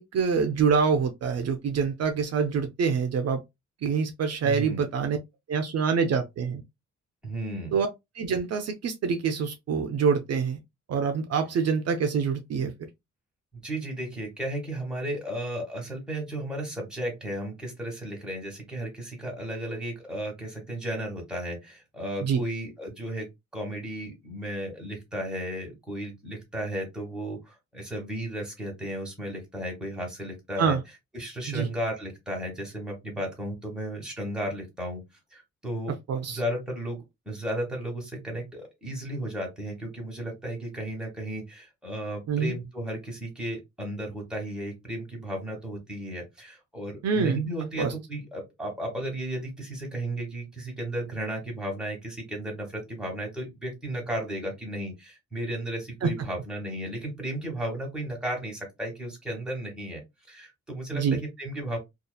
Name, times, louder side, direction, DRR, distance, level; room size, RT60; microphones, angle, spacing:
voice 1, 0.0-3.4 3.8-5.2 5.5-6.6 7.7-7.9 8.2-10.6 10.9-12.7 22.2-22.4 30.6-30.8 31.5-31.7 36.1-36.4 42.3-42.5 47.0-47.4 47.8-47.9 56.0-56.1 60.9-61.2, right 6 dB, 60° right, 0.5 m, -25 dB
voice 2, 4.4-4.8 7.2-7.7 13.5-23.3 23.5-30.8 31.1-35.0 35.3-35.9 36.3-60.0 60.3-61.8, right 1 dB, 5° right, 1.2 m, -34 dB
2.7 x 2.4 x 2.2 m
wide cardioid pair, 125°, 29 cm